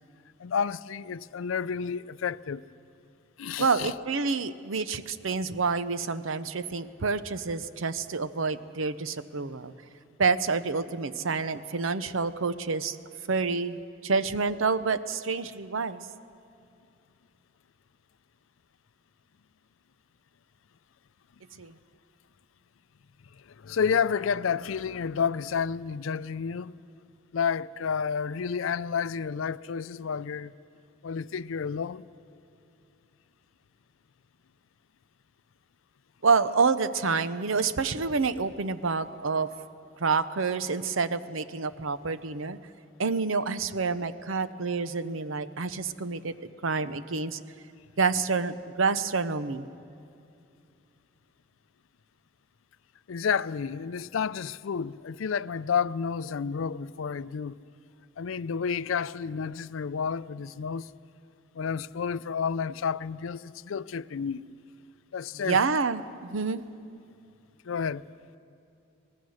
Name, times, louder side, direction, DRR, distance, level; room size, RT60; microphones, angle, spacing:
voice 1, 0.4-2.6 3.4-3.9 23.5-26.8 27.3-30.5 31.0-32.1 53.1-57.6 58.2-60.9 61.6-64.4 65.1-65.6 67.6-68.1, left 6 dB, 85° left, 0.4 m, -30 dB
voice 2, 3.6-9.7 10.2-13.0 13.3-16.0 21.6-21.8 36.2-39.5 40.0-42.6 43.0-46.3 46.6-47.4 48.0-49.7 65.3-66.6, right 4 dB, 80° right, 0.8 m, -28 dB
24.5 x 19.5 x 6.5 m
head